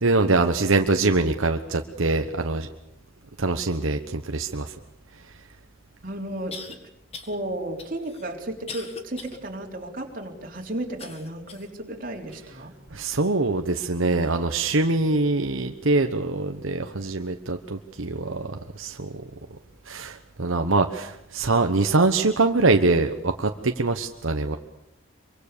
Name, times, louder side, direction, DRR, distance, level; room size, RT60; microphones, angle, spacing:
voice 1, 0.0-2.7 3.4-4.7 12.9-19.1 19.9-24.6, right 3 dB, 75° right, 6 dB, 1.2 m, -23 dB
sound 1, 5.5-5.6 6.5-6.8 7.1-7.4 7.8-9.4 9.8-9.9 11.0-11.7 12.3-12.4 13.2-13.3, left 4 dB, 30° left, 2.0 m, -41 dB
voice 2, 6.0-6.9 7.3-12.7, right 1 dB, 40° right, 1 dB, 3.7 m, -34 dB
25.0 x 24.0 x 6.8 m, 0.80 s
head